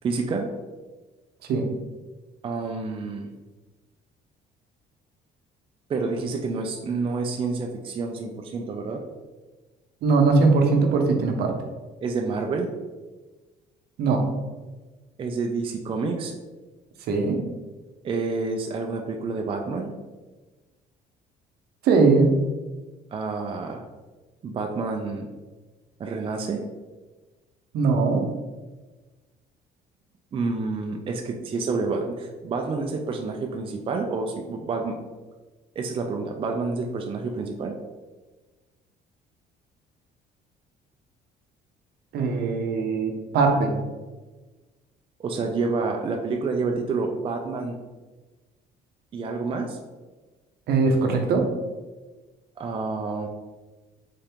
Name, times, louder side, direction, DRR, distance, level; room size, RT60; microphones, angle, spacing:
voice 1, 0.0-0.5 2.4-3.3 5.9-9.0 12.0-12.7 15.2-16.3 18.0-19.9 23.1-23.8 24.4-25.3 26.0-26.6 30.3-35.0 35.8-37.8 45.2-47.8 49.1-49.8 52.6-53.3, right 4 dB, 30° right, 2 dB, 0.4 m, -28 dB
voice 2, 10.0-11.5 14.0-14.2 17.1-17.4 21.8-22.3 27.7-28.2 42.1-43.7 50.7-51.4, right 4 dB, 70° right, 3 dB, 0.7 m, -20 dB
3.8 x 2.8 x 3.4 m, 1.2 s
cardioid pair, 110°, 17 cm